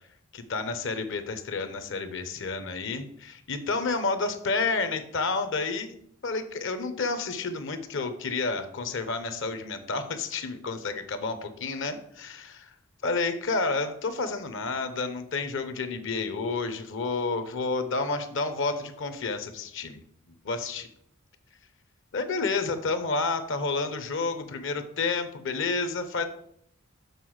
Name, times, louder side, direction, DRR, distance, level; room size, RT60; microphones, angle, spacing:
voice 1, 0.3-5.9 6.2-12.6 13.0-20.0 20.4-20.9 22.1-26.3, left 3 dB, 65° left, 10 dB, 0.8 m, -30 dB
6.7 x 3.9 x 6.3 m, 0.70 s
head